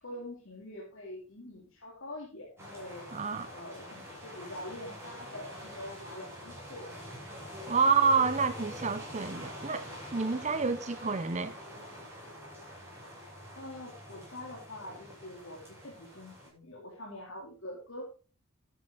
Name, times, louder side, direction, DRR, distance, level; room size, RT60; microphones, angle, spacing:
voice 1, 0.0-3.1 3.5-7.6 13.5-18.1, left 1 dB, 65° left, 3.2 m, -45 dB
sound 1, 2.6-16.5, equal, 10° right, 7.3 m, -45 dB
voice 2, 3.1-3.5 7.7-9.9 10.1-11.5, right 5 dB, 35° right, 0.8 m, -28 dB
12.5 x 10.0 x 3.9 m
head